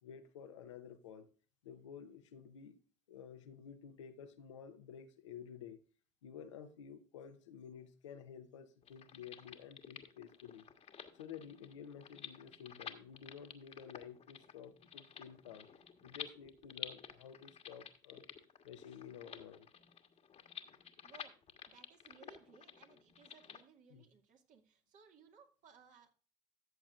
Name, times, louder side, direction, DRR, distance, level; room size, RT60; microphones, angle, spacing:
voice 1, 0.0-1.3 1.6-2.8 3.1-5.8 6.2-10.7 11.1-15.7 16.0-18.2 18.6-19.7 22.2-22.3 23.9-24.1, left 8 dB, 90° left, 0.9 m, -52 dB
sound 1, 8.8-23.6, left 8 dB, 45° left, 1.3 m, -52 dB
voice 2, 21.0-21.3 21.7-26.1, right 6 dB, 55° right, 2.2 m, -62 dB
14.0 x 7.0 x 2.5 m
hypercardioid pair, 65°, 15 cm